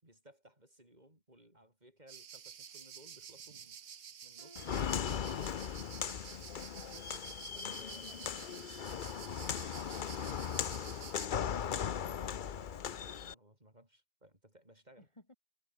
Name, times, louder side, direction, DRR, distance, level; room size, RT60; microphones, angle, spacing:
voice 1, 0.0-5.5 7.5-8.6 9.4-15.1, right 1 dB, 25° right, 6.6 m, -61 dB
sound 1, 2.1-11.3, right 8 dB, 55° right, 1.4 m, -51 dB
sound 2, 4.4-10.3 10.7-11.0 11.7-11.8, right 2 dB, 75° right, 7.9 m, -69 dB
Walk footsteps, 4.6-13.3, left 8 dB, 50° left, 0.6 m, -38 dB
voice 2, 6.7-7.3 8.1-9.0 15.0-15.3, left 2 dB, 20° left, 2.6 m, -60 dB
omnidirectional pair, 1.6 m